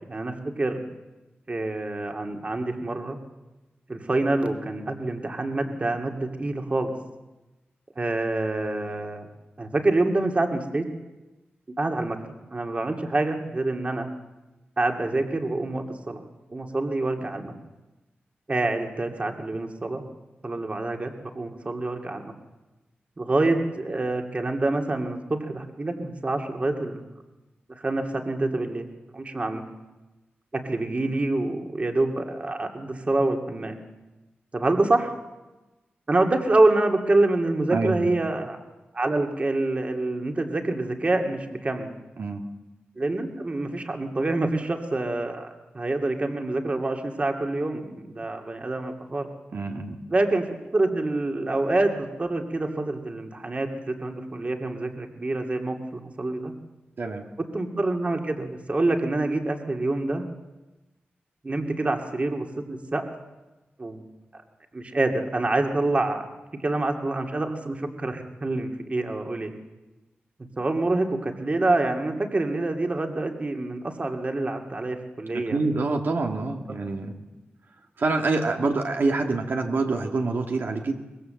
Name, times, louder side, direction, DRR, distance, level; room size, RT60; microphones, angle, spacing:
voice 1, 0.1-0.8 1.5-3.2 3.9-6.9 8.0-9.3 9.6-10.8 11.8-12.2 12.5-14.1 14.8-16.2 16.5-17.5 18.5-20.0 20.4-22.3 23.2-27.0 27.8-28.8 29.1-29.6 30.5-33.7 34.5-35.1 36.1-38.6 38.9-41.9 43.0-49.3 50.1-56.5 57.4-60.2 61.4-63.1 63.8-64.0 64.7-66.3 66.6-69.5 70.6-75.6, right 2 dB, 35° right, 3 dB, 2.5 m, -26 dB
voice 2, 37.7-38.1 42.2-42.4 49.5-50.0 57.0-57.2 75.5-77.2 78.0-81.0, right 3 dB, 65° right, 2 dB, 2.0 m, -26 dB
24.0 x 21.5 x 7.8 m, 1.1 s
wide cardioid pair, 120°, 4 cm